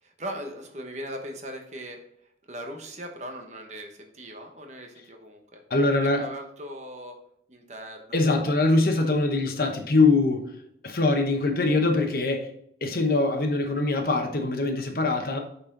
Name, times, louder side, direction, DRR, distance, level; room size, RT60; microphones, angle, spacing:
voice 1, 0.0-2.0 2.5-5.6 6.0-7.2 7.5-8.2 8.5-9.1 11.4-11.5, equal, 40° right, 3 dB, 1.1 m, -39 dB
voice 2, 5.7-6.3 8.1-10.4 10.8-12.5 12.8-15.4, left 2 dB, 55° left, 5 dB, 0.9 m, -23 dB
8.7 x 4.3 x 3.8 m, 0.71 s
head